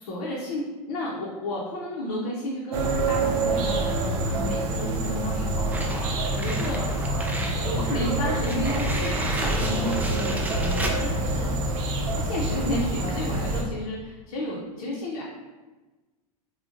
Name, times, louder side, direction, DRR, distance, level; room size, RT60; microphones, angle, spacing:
voice 1, 0.0-6.9 7.6-11.5 12.1-15.2, left 1 dB, 60° left, -5 dB, 0.6 m, -32 dB
sound 1, 2.7-13.6, right 2 dB, 60° right, 0.5 m, -27 dB
sound 2, 5.7-7.6 8.0-8.1 8.4-11.0, right 1 dB, 10° right, 0.3 m, -32 dB
3.6 x 2.2 x 2.4 m, 1.2 s
hypercardioid pair, 90°, 20 cm